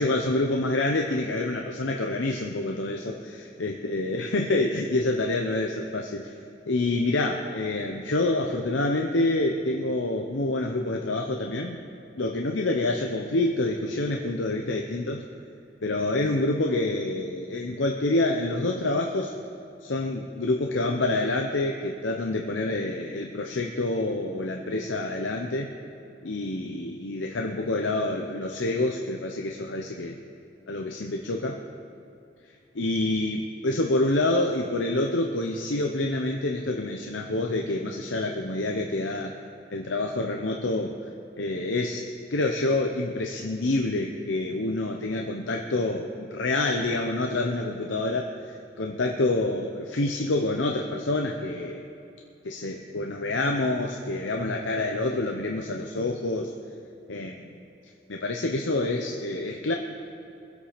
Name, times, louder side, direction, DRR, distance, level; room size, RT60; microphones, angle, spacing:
voice 1, 0.0-6.3 6.7-11.8 12.1-15.2 15.8-19.3 19.8-25.7 26.2-30.2 30.7-31.6 32.7-39.3 39.7-40.9 41.4-51.8 52.4-56.5 57.1-57.5 58.1-59.7, left 2 dB, 85° left, 2 dB, 0.8 m, -27 dB
23.0 x 8.2 x 5.1 m, 2.7 s
head